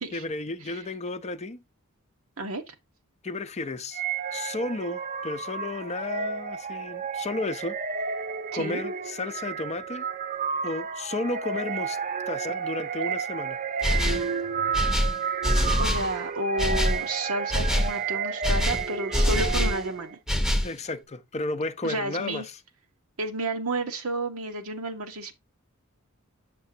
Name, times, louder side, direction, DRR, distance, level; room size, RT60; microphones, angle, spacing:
voice 1, 0.1-1.6 3.2-4.0 4.3-7.8 8.5-10.1 10.6-12.0 12.3-13.6 20.6-22.4, left 2 dB, 30° left, 0.6 m, -33 dB
voice 2, 2.4-2.7 8.5-8.8 15.8-20.2 21.8-22.4 23.2-25.3, right 2 dB, 75° right, 1.2 m, -31 dB
sound 1, 3.9-20.1, right 6 dB, 40° right, 0.6 m, -31 dB
sound 2, 13.8-14.3 14.7-16.1 16.6-17.0 17.5-18.0 18.4-19.8 20.3-20.7, left 1 dB, ahead, 0.8 m, -24 dB
7.7 x 6.7 x 2.8 m
head